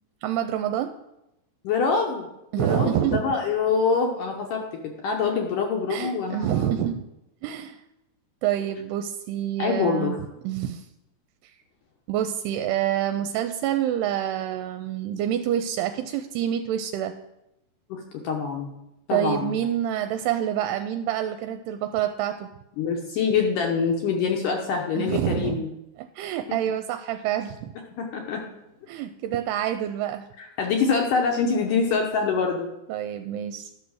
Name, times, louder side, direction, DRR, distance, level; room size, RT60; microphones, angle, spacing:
voice 1, 0.2-0.9 2.5-3.2 5.9-7.0 7.4-7.8 8.4-10.2 10.4-10.9 12.1-17.1 19.1-22.5 25.0-25.6 26.0-27.7 28.9-30.3 32.9-33.7, right 11 dB, 85° right, 7 dB, 2.6 m, -27 dB
voice 2, 1.6-2.3 2.5-6.7 9.6-10.2 17.9-18.7 19.1-19.6 22.8-25.7 28.0-28.4 30.4-32.7, left 5 dB, 70° left, 1 dB, 2.1 m, -25 dB
12.0 x 6.2 x 6.3 m, 0.89 s
omnidirectional pair, 4.8 m